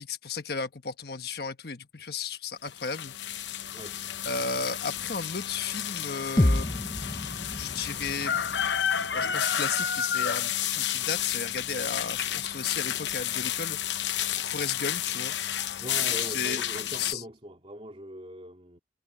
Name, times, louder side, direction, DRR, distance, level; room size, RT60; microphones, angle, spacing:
voice 1, 0.0-3.7 4.2-6.8 7.0-8.4 9.1-13.8 14.4-15.3 16.3-16.6 17.0-17.2, left 5 dB, 60° left, 1.3 m, -34 dB
sound 1, 2.7-17.1, left 9 dB, 85° left, 0.8 m, -31 dB
sound 2, 6.4-10.3, left 1 dB, 20° left, 0.7 m, -30 dB
voice 2, 15.8-18.8, equal, 35° right, 2.8 m, -41 dB
head